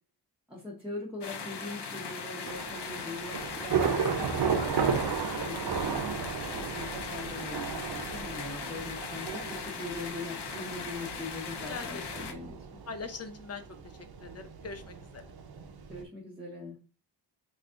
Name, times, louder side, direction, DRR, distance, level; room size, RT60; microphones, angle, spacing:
voice 1, 0.5-6.0 6.5-12.8 15.9-16.8, left 2 dB, ahead, -5 dB, 1.0 m, -42 dB
sound 1, 1.2-12.3, left 5 dB, 75° left, 0.7 m, -39 dB
Thunder / Rain, 2.5-16.0, right 6 dB, 60° right, 0.6 m, -34 dB
voice 2, 11.7-12.3 12.9-13.6 14.2-15.2, left 4 dB, 35° left, 7 dB, 0.6 m, -41 dB
3.3 x 2.4 x 3.7 m, 0.34 s
wide cardioid pair, 100°, 41 cm